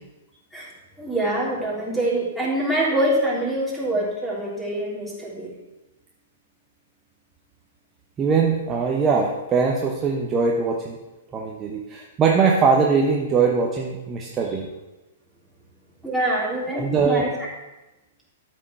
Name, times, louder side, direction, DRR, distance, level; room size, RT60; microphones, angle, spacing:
voice 1, 1.0-5.5 16.0-17.3, right 1 dB, 5° left, -6 dB, 3.5 m, -25 dB
voice 2, 8.2-11.0 11.3-14.7 16.7-17.3, right 5 dB, 20° right, 0 dB, 1.0 m, -21 dB
12.5 x 6.5 x 4.6 m, 1.0 s
figure-of-eight pair, 105°, 0 cm